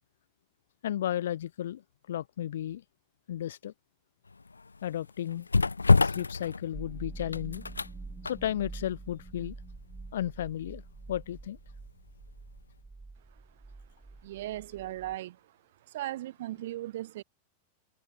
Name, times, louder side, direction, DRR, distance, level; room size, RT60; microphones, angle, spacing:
voice 1, 0.8-1.8 2.1-2.8 3.3-3.7 4.8-5.5 6.0-7.6 8.3-9.5 10.1-10.8 11.1-11.6, left 11 dB, 60° left, 0.5 m, -33 dB
sound 1, 4.3-12.2 12.5-12.7, left 4 dB, 80° left, 0.8 m, -29 dB
sound 2, 6.7-15.1, right 3 dB, 10° right, 4.0 m, -46 dB
voice 2, 14.2-15.4 15.9-17.2, right 15 dB, 55° right, 0.4 m, -37 dB
figure-of-eight pair, 90°, 0 cm